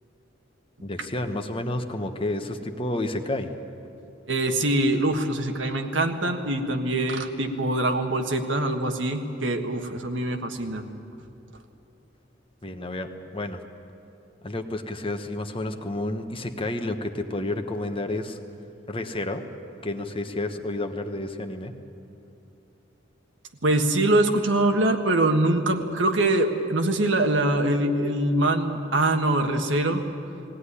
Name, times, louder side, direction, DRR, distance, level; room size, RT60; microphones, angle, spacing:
voice 1, 0.8-3.5 12.6-13.6 14.4-18.4 18.9-19.4 19.8-21.7, left 2 dB, 30° left, 6 dB, 1.1 m, -30 dB
voice 2, 4.3-10.8 23.6-30.0, right 1 dB, 75° right, 5 dB, 1.6 m, -23 dB
20.0 x 17.0 x 9.9 m, 2.8 s
head